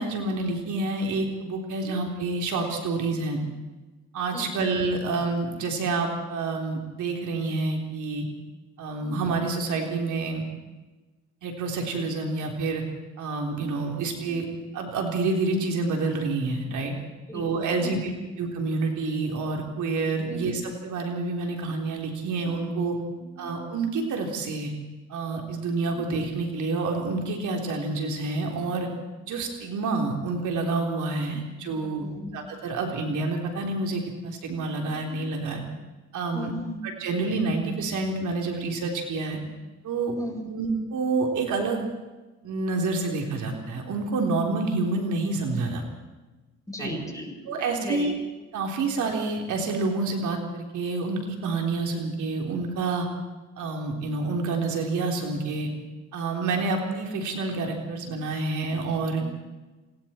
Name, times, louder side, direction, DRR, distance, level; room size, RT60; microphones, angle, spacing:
voice 1, 0.0-3.4 4.1-8.3 8.8-10.4 11.4-12.8 13.2-14.5 14.7-16.9 17.3-18.1 18.4-23.0 23.4-24.7 25.1-28.9 29.3-32.1 32.3-35.6 36.1-36.5 37.0-39.4 39.8-40.2 40.5-41.8 42.4-45.8 46.8-47.0 47.4-48.1 48.5-53.1 53.6-55.7 56.1-59.2, right 3 dB, 75° right, 2 dB, 3.7 m, -28 dB
voice 2, 20.3-20.6 23.1-23.5 25.9-26.1 31.3-31.4 31.7-32.3 36.3-36.8 40.2-40.6 46.7-48.1 59.2-59.4, left 2 dB, 10° left, 0 dB, 7.2 m, -37 dB
27.5 x 21.0 x 4.4 m, 1.2 s
cardioid pair, 90°, 30 cm